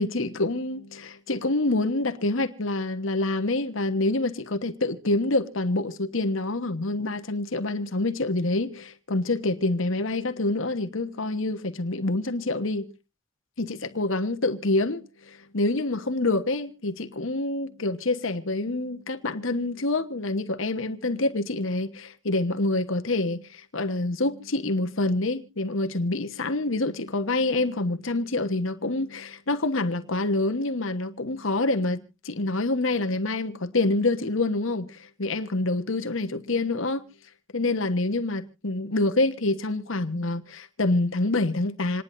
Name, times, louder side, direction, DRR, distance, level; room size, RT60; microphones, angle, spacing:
voice 1, 0.0-12.9 13.6-37.0 37.5-42.0, left 2 dB, 65° left, 1.2 m, -27 dB
27.5 x 10.5 x 2.6 m
head